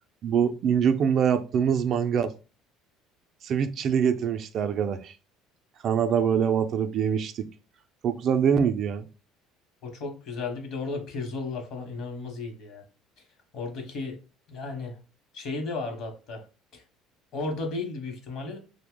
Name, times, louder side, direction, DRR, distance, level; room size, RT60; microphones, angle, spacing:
voice 1, 0.2-2.3 3.4-5.1 5.8-7.4 8.0-9.1, right 7 dB, 50° right, 0.3 m, -24 dB
voice 2, 9.8-12.8 13.5-14.2 14.5-15.0 15.3-16.5 16.7-16.8 17.3-18.6, left 3 dB, 60° left, 0.9 m, -34 dB
2.7 x 2.0 x 3.6 m
cardioid pair, 115°, 0 cm